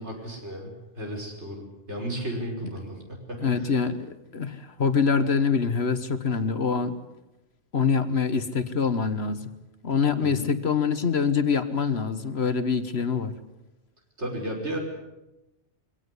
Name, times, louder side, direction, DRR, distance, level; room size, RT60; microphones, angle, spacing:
voice 1, 0.0-3.7 10.2-10.5 14.2-14.8, right 1 dB, 65° right, 1 dB, 5.6 m, -34 dB
voice 2, 3.4-7.0 7.7-9.5 9.8-13.3, left 5 dB, 60° left, 11 dB, 1.6 m, -25 dB
23.0 x 17.5 x 9.8 m, 0.96 s
omnidirectional pair, 1.2 m